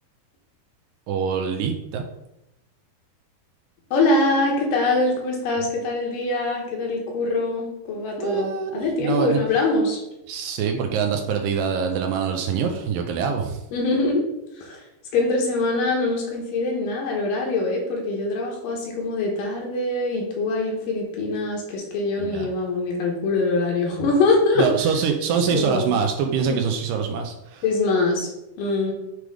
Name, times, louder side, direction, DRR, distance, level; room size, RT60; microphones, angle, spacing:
voice 1, 1.1-2.0 8.2-9.4 10.3-13.6 22.2-22.5 24.6-27.6, right 6 dB, 80° right, 4 dB, 2.1 m, -24 dB
voice 2, 3.9-10.0 13.7-14.3 14.6-14.8 15.1-24.7 25.5-25.9 26.5-26.6 27.6-28.3 28.6-28.9, left 2 dB, 70° left, 0 dB, 2.7 m, -23 dB
7.7 x 3.4 x 4.7 m, 0.90 s
omnidirectional pair, 4.2 m